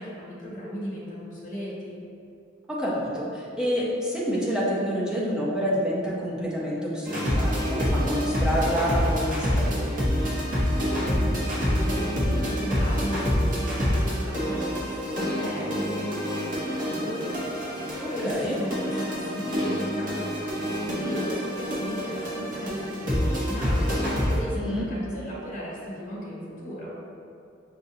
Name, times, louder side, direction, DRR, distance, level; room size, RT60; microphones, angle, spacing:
voice 1, 0.0-2.0 10.9-26.9, equal, 40° left, -8 dB, 1.2 m, -36 dB
voice 2, 2.7-10.0 18.0-18.6 24.6-24.9, equal, 5° right, -7 dB, 0.6 m, -28 dB
sound 1, 7.0-24.4, equal, 45° right, 0.9 m, -27 dB
5.9 x 2.7 x 2.6 m, 2.5 s
head